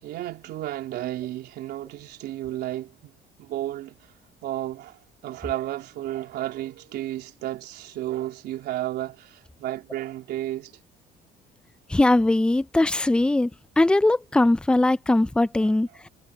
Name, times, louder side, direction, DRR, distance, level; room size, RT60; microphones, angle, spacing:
voice 1, 0.0-3.1 3.4-4.1 4.4-10.7 15.6-15.7, right 14 dB, 75° right, 3.7 m, -33 dB
voice 2, 11.9-13.5 13.8-16.1, left 2 dB, 5° left, 0.5 m, -20 dB
cardioid pair, 110°, 17 cm